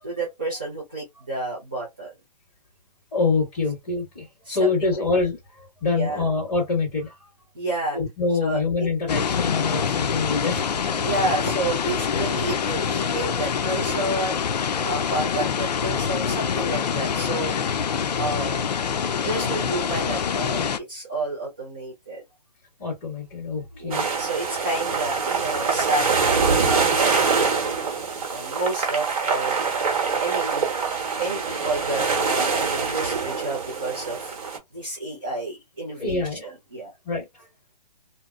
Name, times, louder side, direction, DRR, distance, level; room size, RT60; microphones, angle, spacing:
voice 1, 0.0-2.1 4.4-5.0 5.9-6.2 7.5-8.0 8.4-8.6 10.9-14.4 14.8-17.5 18.1-18.7 19.2-22.2 23.8-27.5 28.3-29.6 30.2-30.7 31.2-34.3 34.7-36.9, right 2 dB, 10° right, 0.4 m, -30 dB
voice 2, 3.1-7.1 7.9-10.9 22.8-24.1 27.9-28.0 36.0-36.5 37.0-37.4, left 4 dB, 15° left, 1.6 m, -26 dB
sound 1, 9.1-20.8, left 7 dB, 75° left, 0.5 m, -25 dB
sound 2, 23.9-34.6, right 5 dB, 55° right, 1.0 m, -24 dB
2.8 x 2.1 x 2.3 m
hypercardioid pair, 180°, 21 cm